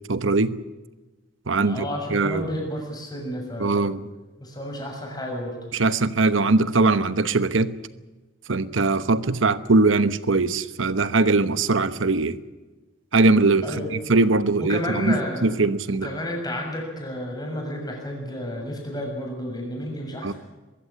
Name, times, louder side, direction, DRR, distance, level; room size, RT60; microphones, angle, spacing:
voice 1, 0.1-0.6 1.5-1.9 2.1-2.4 3.6-4.1 5.7-7.8 8.5-12.4 13.1-13.7 14.1-16.1 20.2-20.3, right 3 dB, 70° right, 1.0 m, -21 dB
voice 2, 1.6-3.8 4.4-5.6 13.6-13.9 14.6-15.6 16.0-20.3, equal, 20° left, 6.9 m, -31 dB
22.5 x 15.0 x 9.8 m
head